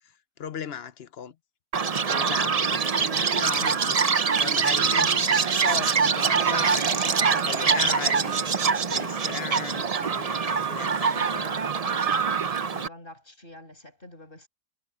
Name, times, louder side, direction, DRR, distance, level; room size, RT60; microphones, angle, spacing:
voice 1, 0.4-1.4 2.0-4.0 4.4-7.2 7.4-8.5 8.9-11.5, left 8 dB, 50° left, 0.8 m, -37 dB
Chirp tweet, 1.7-12.9, right 5 dB, 75° right, 0.3 m, -24 dB
voice 2, 11.1-12.2 12.6-14.5, left 1 dB, 30° left, 7.5 m, -49 dB
omnidirectional pair, 1.8 m